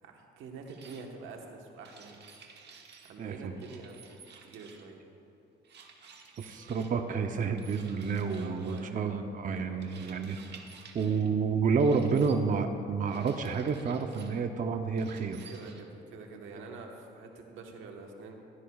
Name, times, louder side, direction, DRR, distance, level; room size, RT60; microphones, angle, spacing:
voice 1, 0.0-2.2 3.0-4.0 4.4-5.0 8.4-9.2 9.6-10.0 15.5-18.3, right 4 dB, 90° right, 2 dB, 1.2 m, -46 dB
sound 1, 0.7-1.0 1.8-3.2 3.6-4.9 5.6-6.9 7.6-8.9 9.8-11.3 11.8-12.4 13.1-14.4 15.0-15.8, right 5 dB, 60° right, 1.3 m, -53 dB
voice 2, 3.2-3.5 6.4-10.4 10.9-15.5, right 5 dB, 40° right, 6 dB, 0.6 m, -29 dB
15.5 x 12.5 x 2.3 m, 2.7 s
cardioid pair, 90°, 20 cm